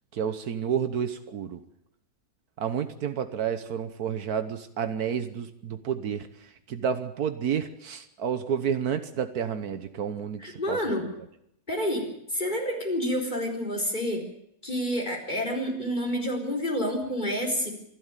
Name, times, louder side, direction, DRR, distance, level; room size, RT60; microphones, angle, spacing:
voice 1, 0.1-1.6 2.6-10.8, right 8 dB, 80° right, 10 dB, 1.6 m, -30 dB
voice 2, 10.4-11.0 11.7-14.2 14.6-17.7, equal, 30° left, 2 dB, 4.7 m, -29 dB
26.0 x 12.5 x 9.1 m, 0.76 s
omnidirectional pair, 1.6 m